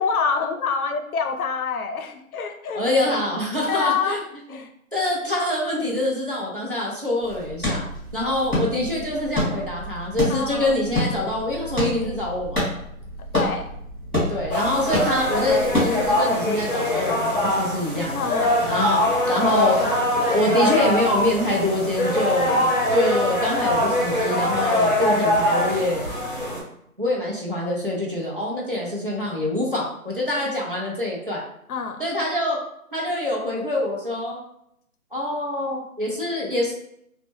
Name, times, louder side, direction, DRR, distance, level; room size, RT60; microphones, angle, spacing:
voice 1, 0.0-2.8 3.6-4.2 4.5-4.7 10.3-10.9 13.3-13.7 18.1-18.6 19.7-20.0 31.7-32.0, left 5 dB, 75° left, 6 dB, 0.5 m, -26 dB
voice 2, 2.7-4.2 4.5-4.6 4.9-7.8 8.1-12.6 14.3-18.3 18.6-19.0 19.2-19.8 20.1-26.0 27.0-31.4 32.0-32.6 32.9-34.4 35.1-36.7, left 1 dB, 40° right, -5 dB, 0.4 m, -25 dB
sound 1, 7.2-16.2, left 1 dB, 5° right, 1.0 m, -28 dB
sound 2, 14.5-26.6, left 1 dB, 35° left, 0.8 m, -23 dB
2.0 x 2.0 x 2.9 m, 0.75 s
hypercardioid pair, 175°, 43 cm